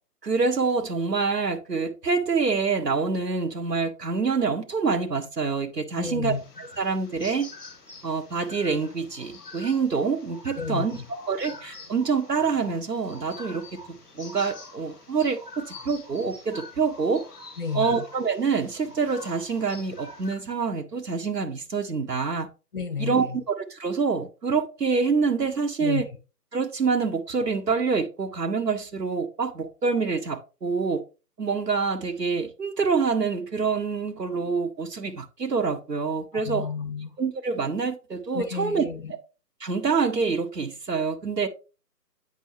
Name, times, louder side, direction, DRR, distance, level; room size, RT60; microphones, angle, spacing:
voice 1, 0.2-7.5 8.0-17.2 17.7-22.5 23.0-26.1 26.5-31.0 31.4-36.6 37.2-38.8 39.6-41.5, right 5 dB, 75° right, 1.2 m, -26 dB
voice 2, 6.0-6.4 10.6-11.1 17.6-18.0 22.7-23.4 25.8-26.0 36.3-37.1 38.3-39.1, left 6 dB, 30° left, 1.0 m, -31 dB
sound 1, 6.3-20.3, left 3 dB, 10° left, 2.0 m, -45 dB
8.0 x 5.8 x 3.0 m
figure-of-eight pair, 150°, 49 cm